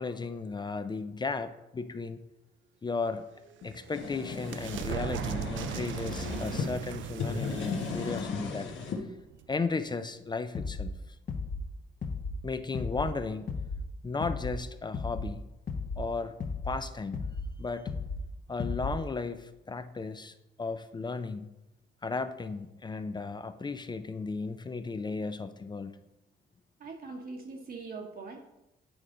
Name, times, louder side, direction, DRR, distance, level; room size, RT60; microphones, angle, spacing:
voice 1, 0.0-2.2 2.8-3.2 3.6-8.7 9.5-11.2 12.4-13.5 14.0-15.4 16.0-16.3 16.6-17.3 17.6-17.9 18.5-21.5 22.0-25.9, left 4 dB, 20° left, 10 dB, 0.4 m, -35 dB
sound 1, 3.4-9.8, right 10 dB, 75° right, 0.4 m, -39 dB
sound 2, 3.6-6.7 7.1-9.0, left 5 dB, 70° left, 1.1 m, -36 dB
sound 3, 10.5-10.9 11.3-11.7 12.0-12.4 12.7-13.1 13.5-13.8 14.2-14.6 14.9-15.3 15.7-16.0 16.4-16.8 17.1-17.5 17.9-18.2 18.6-19.0, left 3 dB, 45° left, 0.9 m, -34 dB
voice 2, 26.8-28.4, right 4 dB, 50° right, 2 dB, 1.1 m, -42 dB
8.8 x 4.9 x 3.8 m, 0.95 s
cardioid pair, 90°, 20 cm